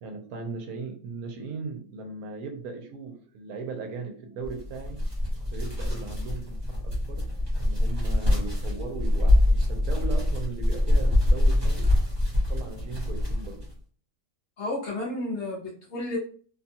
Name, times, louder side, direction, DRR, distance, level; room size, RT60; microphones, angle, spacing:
voice 1, 0.0-5.0 5.5-7.2 7.6-11.9 12.5-13.7, right 4 dB, 70° right, 3 dB, 1.0 m, -38 dB
sound 1, 4.4-13.7, left 1 dB, 20° right, 0.9 m, -24 dB
voice 2, 14.6-16.2, left 2 dB, 55° left, -2 dB, 0.8 m, -32 dB
2.8 x 2.3 x 2.7 m, 0.43 s
omnidirectional pair, 1.7 m